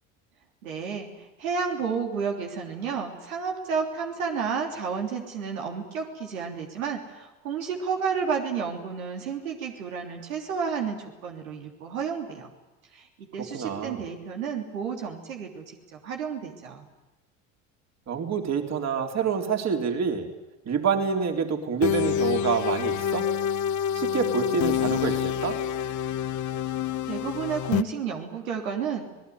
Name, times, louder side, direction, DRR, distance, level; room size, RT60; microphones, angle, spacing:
voice 1, 0.6-12.5 12.9-16.9 27.1-29.1, right 6 dB, 90° right, 2 dB, 3.3 m, -31 dB
voice 2, 13.4-14.0 18.1-20.3 20.7-23.3 23.9-25.6, right 6 dB, 40° right, 4 dB, 3.9 m, -27 dB
sound 1, 21.8-27.8, left 9 dB, 45° left, 1.1 m, -27 dB
27.0 x 19.0 x 9.5 m, 1.0 s
hypercardioid pair, 80°, 40 cm